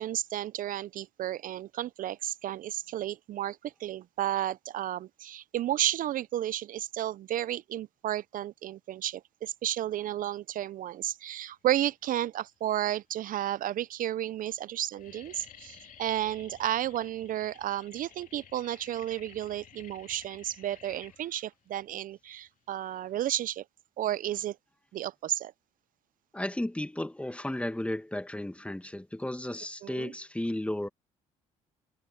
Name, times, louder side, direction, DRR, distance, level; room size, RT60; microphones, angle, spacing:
voice 1, 0.0-23.6 24.0-24.6 24.9-25.5 29.8-30.1, right 12 dB, 55° right, 0.6 m, -32 dB
sound 1, 12.4-12.9 13.6-13.7 14.0-14.4 14.6-23.6, left 9 dB, 55° left, 3.1 m, -54 dB
voice 2, 26.3-30.9, left 1 dB, 5° left, 1.7 m, -34 dB
hypercardioid pair, 60°, 16 cm